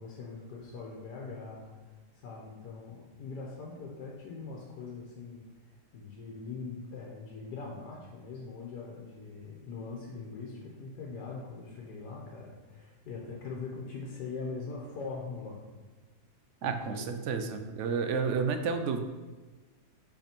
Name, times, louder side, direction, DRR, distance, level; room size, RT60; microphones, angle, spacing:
voice 1, 0.0-1.7 2.1-15.7 16.6-17.1 18.1-18.4, left 4 dB, 85° left, -2 dB, 1.5 m, -42 dB
voice 2, 16.6-19.0, right 5 dB, 60° right, 7 dB, 0.8 m, -31 dB
5.8 x 5.1 x 4.4 m, 1.3 s
omnidirectional pair, 1.7 m